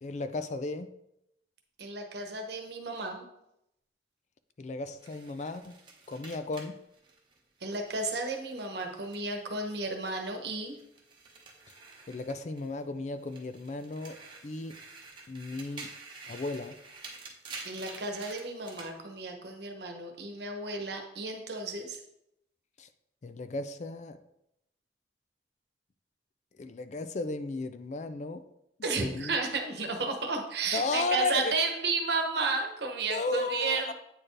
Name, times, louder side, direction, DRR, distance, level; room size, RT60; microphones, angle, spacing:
voice 1, 0.0-0.9 4.6-5.7 6.1-6.8 12.1-14.8 15.3-15.9 16.3-16.8 22.8-22.9 23.2-24.2 26.6-28.4 29.0-29.3 30.7-31.5 33.1-33.9, left 3 dB, 40° left, 11 dB, 0.4 m, -34 dB
voice 2, 1.8-3.3 7.6-10.8 17.6-22.0 28.8-33.9, right 3 dB, 65° right, 3 dB, 1.1 m, -33 dB
sound 1, 5.0-9.6 9.9-12.8 13.2-18.9, right 3 dB, 25° right, 1.2 m, -49 dB
8.7 x 4.4 x 3.3 m, 0.81 s
head